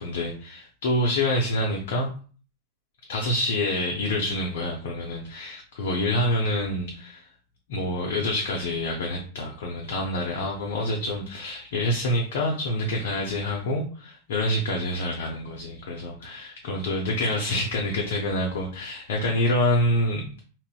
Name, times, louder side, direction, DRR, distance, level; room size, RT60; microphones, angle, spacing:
voice 1, 0.0-2.1 3.1-7.3 7.7-20.2, left 1 dB, 55° left, 0 dB, 0.5 m, -27 dB
3.8 x 2.0 x 2.3 m, 0.40 s
figure-of-eight pair, 90°, 0 cm